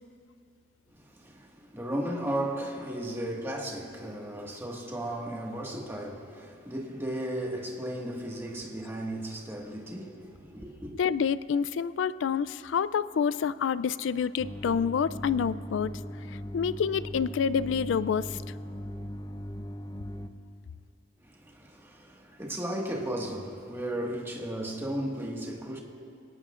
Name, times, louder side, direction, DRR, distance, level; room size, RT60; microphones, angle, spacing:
voice 1, 0.9-10.9 21.2-25.8, right 1 dB, 15° right, 1.6 m, -35 dB
voice 2, 11.0-15.9 16.3-18.4, left 7 dB, 85° left, 0.3 m, -28 dB
sound 1, 14.4-20.3, equal, 20° left, 0.5 m, -39 dB
27.5 x 18.0 x 2.5 m
head